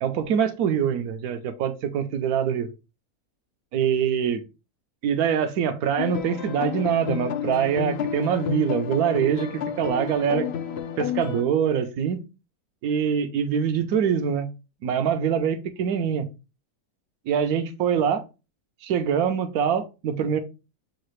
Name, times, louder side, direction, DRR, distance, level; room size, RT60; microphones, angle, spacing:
voice 1, 0.0-2.7 3.7-4.4 5.0-10.5 11.0-12.2 12.8-14.5 14.8-16.3 17.3-18.2 18.8-20.4, right 8 dB, 80° right, 9 dB, 1.1 m, -24 dB
sound 1, 6.0-11.4, left 8 dB, 70° left, 0.6 m, -30 dB
6.6 x 2.4 x 3.1 m, 0.29 s
omnidirectional pair, 1.6 m